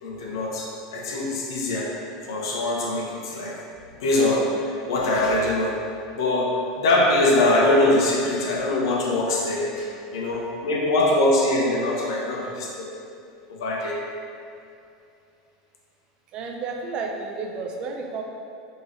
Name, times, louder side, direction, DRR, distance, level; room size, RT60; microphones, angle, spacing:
voice 1, 0.0-2.0 2.3-3.6 4.0-5.8 6.1-12.9 13.5-14.0, left 1 dB, 85° left, -3 dB, 0.7 m, -23 dB
voice 2, 16.3-18.2, right 4 dB, 40° right, 2 dB, 0.5 m, -31 dB
3.8 x 3.0 x 4.0 m, 2.5 s
supercardioid pair, 135°, 2 cm